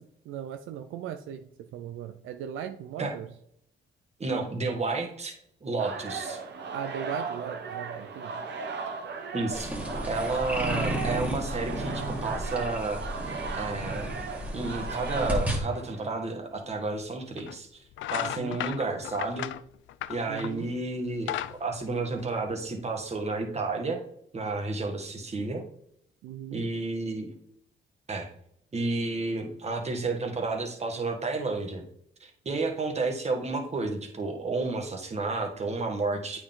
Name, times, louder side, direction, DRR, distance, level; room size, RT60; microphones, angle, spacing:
voice 1, 0.0-3.3 6.7-8.4 18.2-18.6 20.3-20.7 26.2-26.7, right 9 dB, 85° right, 8 dB, 0.6 m, -38 dB
voice 2, 4.2-5.3 5.6-6.4 9.3-9.7 10.1-13.0 13.6-14.1 14.5-17.7 18.1-19.5 20.1-24.0 24.3-25.6 26.5-27.3 28.1-28.3 28.7-31.8 32.2-36.4, right 3 dB, 35° right, 3 dB, 1.7 m, -31 dB
sound 1, 5.8-16.3, right 4 dB, 60° right, 1.2 m, -37 dB
sound 2, 9.5-15.6, equal, 5° right, 1.9 m, -33 dB
sound 3, 16.6-16.7 17.4-17.6 17.9-20.7 21.0-22.7, left 13 dB, 75° left, 0.4 m, -35 dB
8.7 x 4.8 x 3.8 m, 0.71 s
cardioid pair, 90°, 20 cm